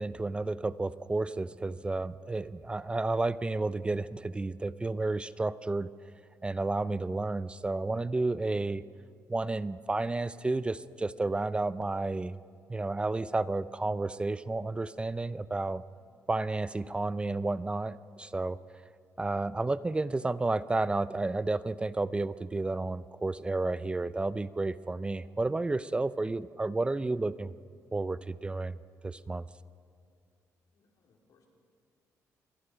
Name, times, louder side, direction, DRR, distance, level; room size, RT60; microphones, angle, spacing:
voice 1, 0.0-5.9 6.4-8.8 9.3-12.4 12.7-15.8 16.3-18.6 19.2-27.5 27.9-28.8 29.0-29.4, right 2 dB, 15° right, 15 dB, 0.5 m, -31 dB
voice 2, 30.7-31.5, left 5 dB, 70° left, 0 dB, 4.3 m, -68 dB
27.5 x 22.0 x 5.1 m, 2.3 s
cardioid pair, 115°, 6 cm